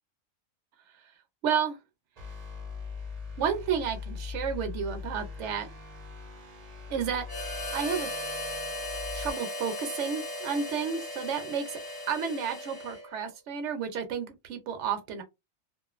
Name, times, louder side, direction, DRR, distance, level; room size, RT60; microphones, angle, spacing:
voice 1, 1.4-1.8 3.4-5.7 6.9-7.3 7.7-8.1 9.1-11.8 12.1-15.2, right 7 dB, 70° right, 0.9 m, -31 dB
sound 1, 2.2-9.3, left 5 dB, 40° right, 0.6 m, -41 dB
Harmonica, 7.3-13.3, left 1 dB, 25° left, 0.5 m, -37 dB
2.5 x 2.3 x 2.4 m
omnidirectional pair, 1.3 m